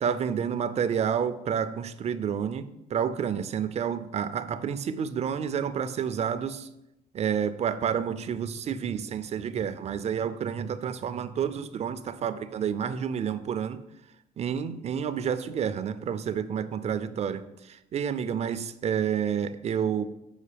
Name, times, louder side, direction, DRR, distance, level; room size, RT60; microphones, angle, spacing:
voice 1, 0.0-6.7 7.1-13.8 14.4-17.4 17.9-20.1, right 8 dB, 40° right, 12 dB, 0.4 m, -29 dB
5.6 x 4.6 x 5.0 m, 0.88 s
cardioid pair, 110°, 17 cm